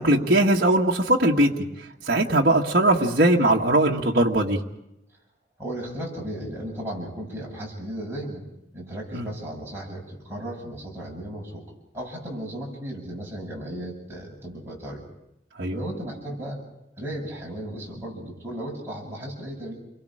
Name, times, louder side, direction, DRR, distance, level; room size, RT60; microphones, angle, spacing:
voice 1, 0.0-1.5 2.1-4.6 9.1-9.3 15.6-15.8, right 1 dB, 55° right, -2 dB, 1.8 m, -20 dB
voice 2, 5.6-8.5 8.7-11.6 11.9-15.0 15.7-16.6 17.0-19.7, right 1 dB, 15° right, -3 dB, 7.6 m, -35 dB
29.5 x 23.0 x 5.1 m, 0.84 s
head